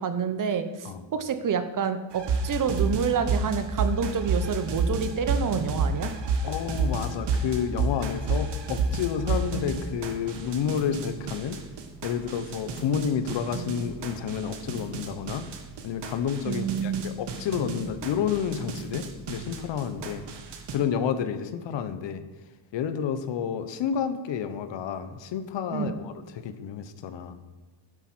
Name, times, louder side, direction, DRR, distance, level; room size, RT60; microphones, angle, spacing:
voice 1, 0.0-6.1 16.5-17.0 25.7-26.0, right 7 dB, 40° right, 10 dB, 1.0 m, -28 dB
sound 1, 2.1-20.8, right 3 dB, 60° right, 1.7 m, -30 dB
voice 2, 6.4-11.6 12.0-15.5 15.8-20.2 20.7-22.2 22.7-27.4, left 7 dB, 65° left, 11 dB, 1.1 m, -30 dB
11.5 x 7.4 x 6.2 m, 1.3 s
cardioid pair, 130°, 47 cm